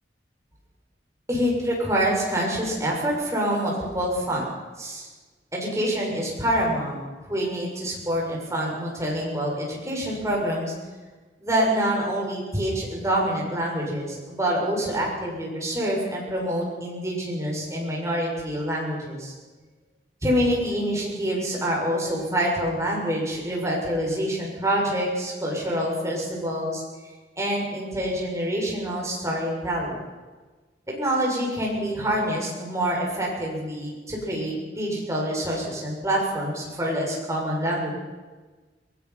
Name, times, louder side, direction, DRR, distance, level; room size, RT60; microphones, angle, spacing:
voice 1, 1.3-4.4 4.8-5.1 5.5-10.7 11.4-19.3 20.2-26.8 27.4-30.0 30.9-37.9, equal, 15° right, -3 dB, 7.5 m, -26 dB
23.0 x 22.0 x 6.2 m, 1.3 s
head